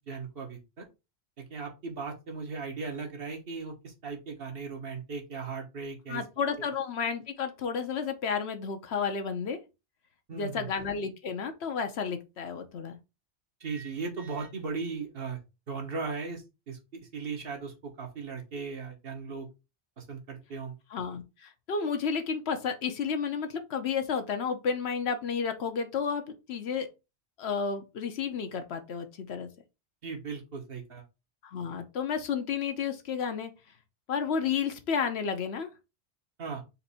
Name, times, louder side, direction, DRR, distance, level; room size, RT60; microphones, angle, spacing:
voice 1, 0.1-0.9 1.4-6.2 10.3-10.7 13.6-15.4 15.7-19.5 20.0-20.7 30.0-31.0 36.4-36.6, right 4 dB, 60° right, 1.2 m, -37 dB
voice 2, 6.1-9.6 10.3-13.0 20.9-26.9 27.4-29.5 31.4-33.5 34.1-35.7, left 6 dB, 70° left, 1.0 m, -32 dB
4.2 x 2.6 x 4.0 m
omnidirectional pair, 1.1 m